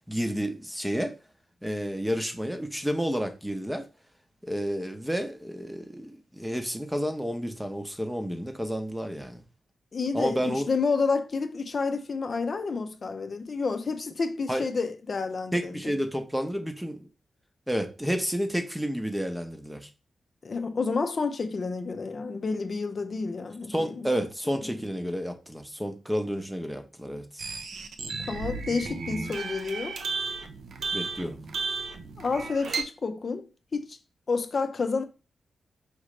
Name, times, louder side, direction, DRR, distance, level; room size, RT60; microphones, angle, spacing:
voice 1, 0.1-1.1 1.6-3.9 4.4-9.4 10.1-10.7 14.5-14.7 15.5-17.1 17.7-19.9 23.7-27.4 30.9-31.4, equal, 5° right, 0.7 m, -30 dB
voice 2, 9.9-16.0 20.4-24.1 24.5-24.8 28.2-30.0 32.2-34.0 34.3-35.0, left 4 dB, 50° left, 0.5 m, -30 dB
sound 1, 27.4-32.8, right 4 dB, 75° right, 0.6 m, -34 dB
4.9 x 3.1 x 3.2 m
cardioid pair, 90°, 0 cm